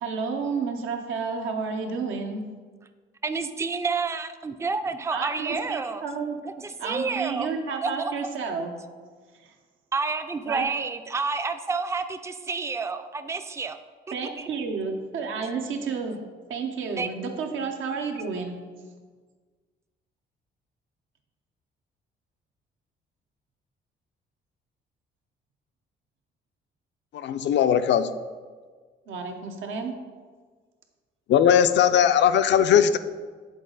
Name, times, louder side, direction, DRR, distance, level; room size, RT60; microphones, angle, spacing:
voice 1, 0.0-2.4 5.1-6.4 6.8-8.7 10.5-10.7 14.1-16.2 16.5-18.6 29.1-29.9, right 5 dB, 80° right, 4 dB, 0.9 m, -31 dB
voice 2, 3.2-6.0 6.4-7.5 7.8-8.1 9.9-13.8 14.1-14.5 17.0-17.1, right 4 dB, 15° right, 9 dB, 0.3 m, -29 dB
voice 3, 27.1-28.1 31.3-33.0, left 9 dB, 65° left, 11 dB, 0.4 m, -19 dB
7.6 x 4.0 x 3.9 m, 1.5 s
cardioid pair, 90°, 20 cm